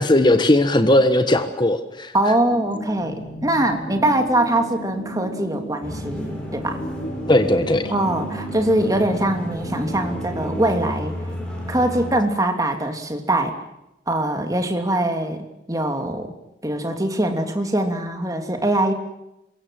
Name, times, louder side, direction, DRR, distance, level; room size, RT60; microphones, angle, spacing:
voice 1, 0.0-2.1 7.3-7.9, left 1 dB, 25° left, 8 dB, 1.4 m, -17 dB
voice 2, 2.1-6.8 7.9-11.1 11.7-13.5 14.1-16.3 16.6-18.9, right 1 dB, 20° right, 5 dB, 3.0 m, -22 dB
sound 1, 2.5-10.7, right 1 dB, 45° left, 6.7 m, -34 dB
sound 2, 5.8-12.1, equal, 5° left, 7.7 m, -33 dB
27.0 x 23.5 x 7.7 m, 0.89 s
head